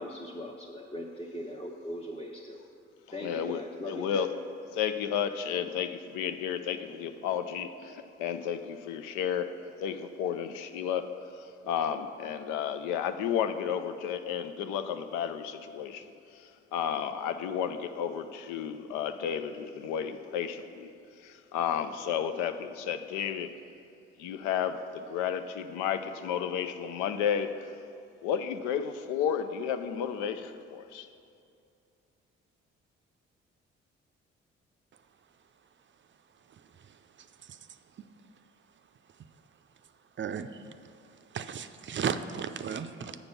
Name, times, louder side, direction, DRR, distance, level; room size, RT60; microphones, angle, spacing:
voice 1, 0.0-2.6 3.1-4.2, left 1 dB, 20° left, -2 dB, 0.9 m, -40 dB
voice 2, 3.2-4.3 4.7-16.0 16.3-23.6 24.2-27.7 28.2-31.1, left 8 dB, 85° left, 10 dB, 0.5 m, -32 dB
voice 3, 40.2-40.7 41.3-43.2, right 7 dB, 40° right, 10 dB, 0.5 m, -34 dB
8.2 x 5.2 x 5.7 m, 2.6 s
hypercardioid pair, 50°, 29 cm